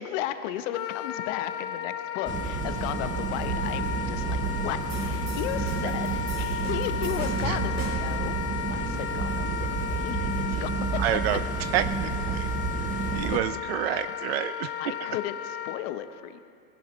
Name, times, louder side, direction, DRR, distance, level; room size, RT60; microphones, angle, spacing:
voice 1, 0.0-8.3 8.7-11.0 13.0-13.1 14.6-16.4, left 12 dB, 50° left, 10 dB, 1.0 m, -35 dB
Wind instrument woodwind instrument, 0.7-15.8, left 10 dB, 30° left, 0.6 m, -34 dB
sound 1, 2.3-13.4, right 5 dB, 15° right, 0.8 m, -30 dB
sound 2, 4.9-8.2, right 3 dB, 80° right, 4.4 m, -39 dB
voice 2, 11.0-11.4 11.7-12.5 13.1-14.7, right 11 dB, 40° right, 13 dB, 0.4 m, -28 dB
20.5 x 16.5 x 3.2 m, 2.5 s
hypercardioid pair, 115°, 50 cm